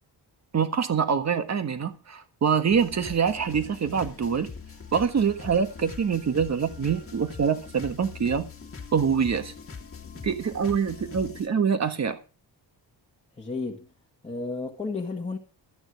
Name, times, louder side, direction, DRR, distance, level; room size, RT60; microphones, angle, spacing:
voice 1, 0.5-4.5 4.9-8.5 8.9-9.5 10.2-12.2, right 6 dB, 40° right, 1.6 m, -25 dB
sound 1, 2.7-11.5, left 5 dB, 30° left, 2.2 m, -42 dB
voice 2, 13.3-13.9 14.2-15.4, left 3 dB, 15° left, 1.8 m, -32 dB
13.5 x 9.0 x 6.2 m
wide cardioid pair, 155°, 43 cm